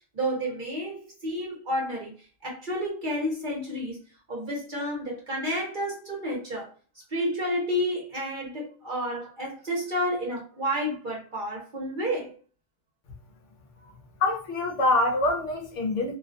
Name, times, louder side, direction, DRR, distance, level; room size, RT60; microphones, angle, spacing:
voice 1, 0.1-2.1 2.4-4.0 4.3-6.7 7.1-12.3, equal, 45° right, 0.8 m, -30 dB
voice 2, 14.2-16.2, left 2 dB, 70° left, 0.9 m, -25 dB
2.4 x 2.2 x 2.6 m
omnidirectional pair, 1.4 m